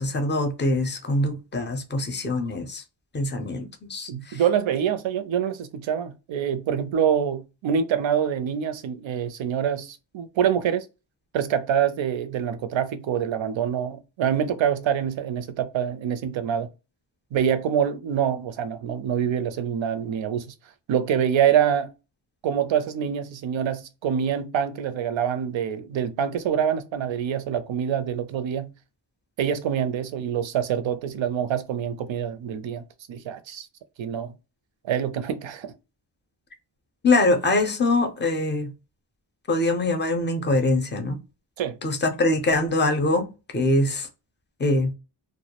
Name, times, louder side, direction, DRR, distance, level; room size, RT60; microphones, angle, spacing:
voice 1, 0.0-2.8 3.1-4.4 37.0-38.7 39.5-41.2 41.8-44.1 44.6-44.9, left 2 dB, 25° left, 0.4 m, -23 dB
voice 2, 4.1-10.8 11.3-16.7 17.3-20.5 20.9-21.9 22.4-28.7 29.4-32.8 33.1-33.7 34.0-34.3 34.8-35.7 41.6-41.8, right 8 dB, 80° right, 0.5 m, -25 dB
2.3 x 2.1 x 2.8 m
wide cardioid pair, 120°, 45 cm